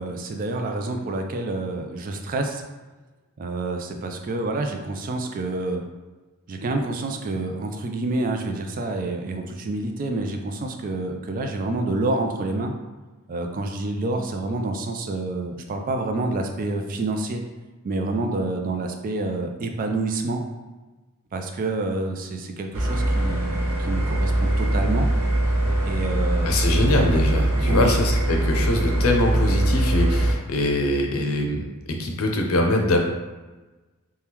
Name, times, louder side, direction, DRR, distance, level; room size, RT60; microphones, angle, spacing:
voice 1, 0.0-2.6 3.4-5.8 6.5-12.7 13.3-17.4 17.8-20.4 21.3-25.1 25.8-26.5 27.6-28.0, right 2 dB, 40° right, 4 dB, 0.3 m, -28 dB
sound 1, 22.7-30.3, right 1 dB, 85° right, 0.6 m, -22 dB
voice 2, 26.4-31.6 31.9-33.0, left 1 dB, 90° left, 2 dB, 0.5 m, -23 dB
2.9 x 2.2 x 3.4 m, 1.2 s
head